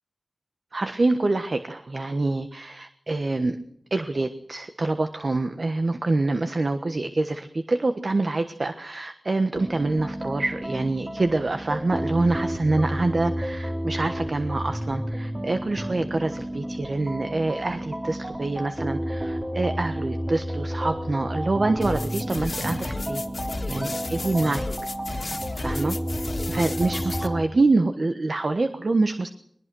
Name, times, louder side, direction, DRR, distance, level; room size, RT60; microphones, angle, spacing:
voice 1, 0.7-3.6 3.9-24.7 25.1-29.3, right 2 dB, 55° right, 8 dB, 1.3 m, -26 dB
sound 1, 9.5-27.4, equal, 20° right, 2.7 m, -31 dB
sound 2, 21.8-27.3, left 2 dB, 60° left, 1.9 m, -33 dB
21.5 x 19.5 x 6.2 m, 0.70 s
wide cardioid pair, 55°, 0 cm